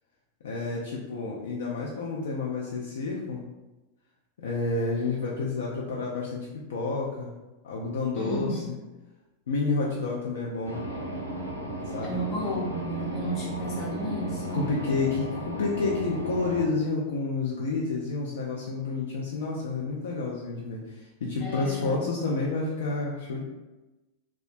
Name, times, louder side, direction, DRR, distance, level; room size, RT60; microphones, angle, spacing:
voice 1, 0.4-3.5 4.4-7.3 7.6-8.8 9.5-10.8 11.9-12.2 14.5-23.4, left 3 dB, 60° left, -3 dB, 0.3 m, -30 dB
voice 2, 8.1-8.7 12.0-14.6 21.4-22.0, right 1 dB, 30° left, -5 dB, 1.0 m, -33 dB
sound 1, 10.6-16.7, right 1 dB, 85° right, 0.4 m, -35 dB
2.2 x 2.1 x 2.6 m, 1.1 s
figure-of-eight pair, 90°, 0 cm